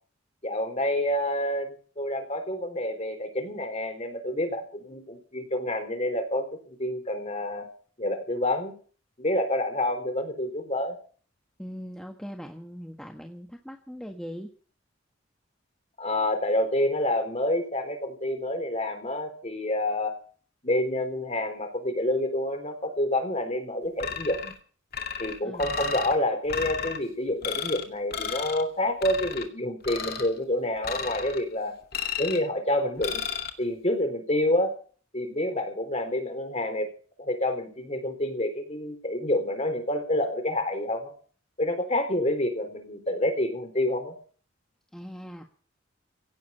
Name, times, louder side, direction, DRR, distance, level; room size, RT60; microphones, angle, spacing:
voice 1, 0.4-7.7 8.0-8.8 9.2-11.0 16.0-20.1 20.6-24.5 25.2-31.8 32.2-33.2 33.6-34.8 35.1-36.9 37.2-41.1 41.6-44.1, left 1 dB, 35° left, 7 dB, 3.9 m, -28 dB
voice 2, 11.6-14.5 25.4-25.7 44.9-45.4, equal, 5° left, 2 dB, 1.5 m, -40 dB
sound 1, 24.0-24.6 24.9-26.1 26.5-27.0 27.4-27.8 28.1-28.6 29.0-29.5 29.8-30.3 30.8-31.4 31.9-32.5 33.0-33.5, left 6 dB, 50° left, 2.3 m, -33 dB
17.0 x 7.5 x 9.9 m, 0.42 s
head